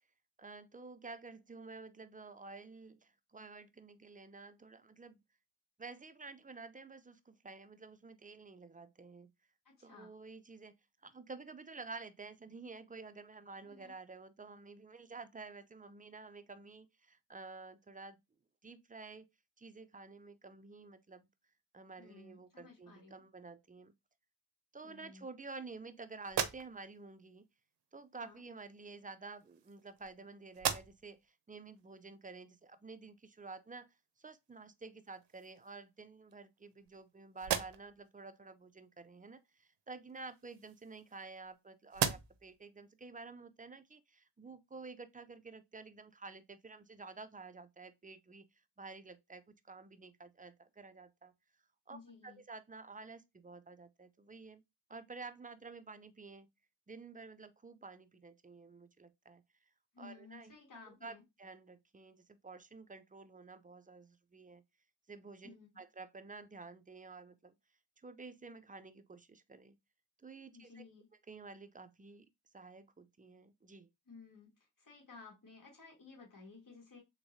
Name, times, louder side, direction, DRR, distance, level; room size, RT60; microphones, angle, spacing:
voice 1, 0.4-5.2 5.8-9.3 9.8-10.7 11.0-18.2 18.6-19.3 19.6-21.3 21.7-23.9 24.7-27.5 27.9-48.4 48.8-51.3 51.9-52.0 52.2-54.6 54.9-56.5 56.9-59.4 60.0-60.5 60.9-64.6 65.1-67.6 68.0-69.8 70.2-70.8 71.3-72.3 72.5-73.9, right 4 dB, 20° right, 0.4 m, -51 dB
voice 2, 9.7-10.1 13.6-13.9 22.0-23.2 24.8-25.3 28.2-28.4 51.9-52.4 59.9-61.2 65.4-65.7 70.5-71.1 74.1-74.5 74.8-77.0, left 4 dB, 50° left, 2.1 m, -56 dB
sound 1, 26.2-27.1 28.2-28.4 29.3-30.2 30.5-31.2 31.7-31.8 34.5-34.6 35.0-35.7 36.3-37.0 37.4-38.1 40.1-41.5 41.9-42.6, right 8 dB, 70° right, 0.6 m, -39 dB
3.5 x 3.1 x 2.6 m
cardioid pair, 55°, 44 cm